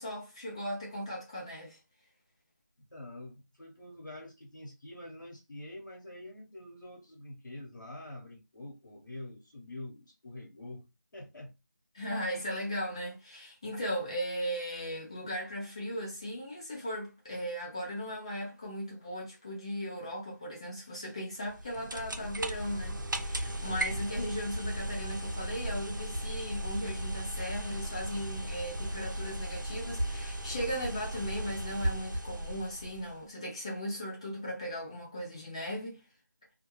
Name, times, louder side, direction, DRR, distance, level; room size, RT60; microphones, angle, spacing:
voice 1, 0.0-1.8 11.9-36.0, equal, 20° left, 0.5 m, -37 dB
voice 2, 2.9-10.9 11.1-11.5 24.0-24.2, left 1 dB, 75° left, 0.9 m, -46 dB
sound 1, 21.4-33.2, right 1 dB, 90° right, 0.5 m, -36 dB
2.2 x 2.2 x 3.0 m
figure-of-eight pair, 165°, 10 cm